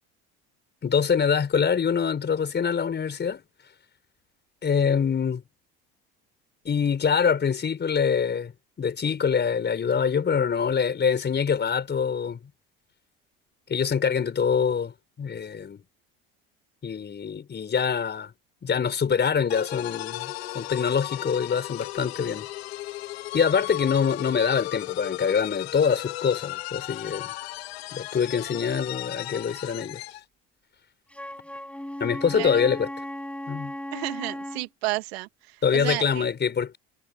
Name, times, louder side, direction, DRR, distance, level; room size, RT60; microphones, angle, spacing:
voice 1, 0.8-3.4 4.6-5.4 6.7-8.5 8.8-12.4 13.7-15.8 16.8-18.3 18.6-22.5 23.3-27.3 27.9-30.0 32.0-32.9 33.5-33.7 35.6-36.8, left 6 dB, 35° left, 5.5 m, -25 dB
sound 1, 19.5-30.2, left 18 dB, 90° left, 2.9 m, -36 dB
Wind instrument woodwind instrument, 31.1-34.7, left 1 dB, 5° left, 6.9 m, -36 dB
voice 2, 33.9-35.3 35.7-36.2, right 21 dB, 85° right, 2.2 m, -31 dB
hypercardioid pair, 80°, 30 cm